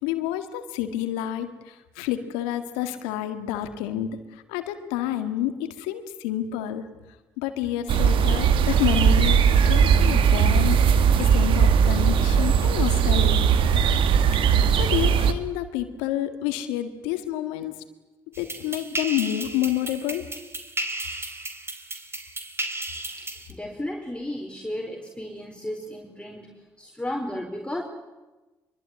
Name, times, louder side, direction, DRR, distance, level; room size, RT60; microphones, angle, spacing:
voice 1, 0.0-6.9 7.4-10.8 11.2-13.4 14.7-17.8 18.4-20.3, left 12 dB, 85° left, 9 dB, 2.0 m, -29 dB
sound 1, 7.9-15.3, right 7 dB, 70° right, 1.7 m, -19 dB
sound 2, 18.3-23.5, right 2 dB, 25° right, 4.5 m, -34 dB
voice 2, 23.2-27.8, left 1 dB, 10° left, 2 dB, 4.5 m, -34 dB
24.5 x 23.0 x 9.4 m, 1.1 s
hypercardioid pair, 45°, 9 cm